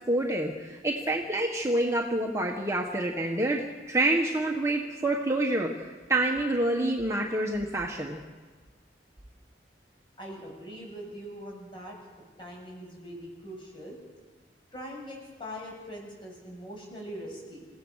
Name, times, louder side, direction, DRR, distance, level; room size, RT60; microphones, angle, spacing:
voice 1, 0.1-8.2, right 1 dB, 15° right, 0 dB, 1.5 m, -27 dB
voice 2, 10.2-12.0 12.4-14.0 14.7-17.7, equal, 30° left, -1 dB, 7.0 m, -42 dB
28.0 x 16.5 x 6.5 m, 1.4 s
head